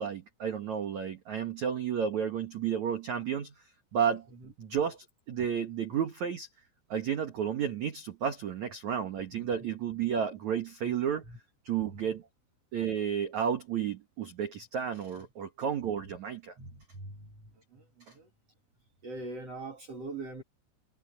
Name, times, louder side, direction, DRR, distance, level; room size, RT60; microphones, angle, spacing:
voice 1, 0.0-3.5 3.9-4.3 4.6-6.5 6.9-11.2 11.6-12.2 12.7-16.5, right 8 dB, 80° right, 1.6 m, -32 dB
voice 2, 16.6-17.4 17.7-17.8 18.1-18.3 19.0-20.4, right 2 dB, 50° right, 2.0 m, -42 dB
omnidirectional pair, 5.9 m